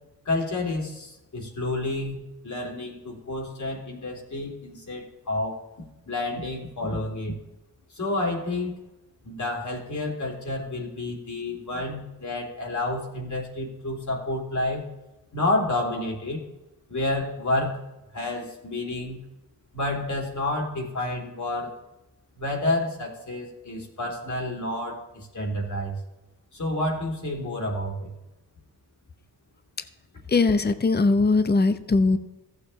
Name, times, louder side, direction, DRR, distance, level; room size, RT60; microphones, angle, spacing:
voice 1, 0.2-5.6 6.0-7.4 7.9-8.8 9.2-14.9 15.3-16.4 16.9-17.8 18.1-19.2 19.7-21.8 22.4-26.0 26.5-28.1, left 2 dB, 50° left, 0 dB, 2.9 m, -29 dB
voice 2, 30.3-32.2, left 3 dB, 25° left, 11 dB, 0.7 m, -20 dB
14.5 x 6.8 x 3.2 m, 1.0 s
cardioid pair, 60°, 38 cm